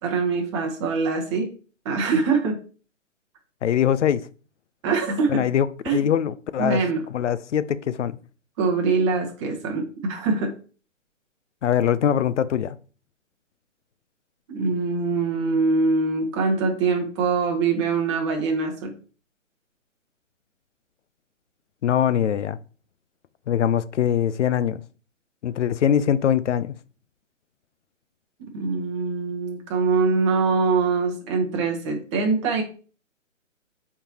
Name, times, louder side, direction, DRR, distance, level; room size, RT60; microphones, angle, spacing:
voice 1, 0.0-1.5 1.8-2.6 4.8-5.5 5.8-6.1 6.6-7.0 8.6-10.6 14.5-19.0 28.5-32.6, right 4 dB, 20° right, 1.1 m, -23 dB
voice 2, 3.6-4.3 5.3-5.7 5.9-6.8 7.1-8.2 11.6-12.7 21.8-22.6 23.5-24.8 25.4-26.7, left 9 dB, 65° left, 0.5 m, -22 dB
4.5 x 3.6 x 2.9 m
figure-of-eight pair, 145°, 39 cm